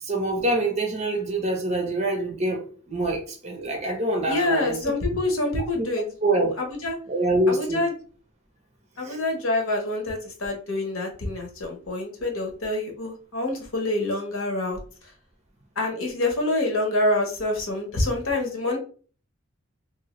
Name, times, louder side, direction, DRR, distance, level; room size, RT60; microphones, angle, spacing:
voice 1, 0.0-4.8 5.7-5.9 6.2-6.5 7.1-7.8 9.0-9.2, right 1 dB, 35° right, 0.8 m, -25 dB
voice 2, 4.3-6.1 6.6-7.0 7.5-7.9 9.0-14.8 15.8-18.8, left 2 dB, 85° left, 1.0 m, -26 dB
2.7 x 2.3 x 3.0 m
head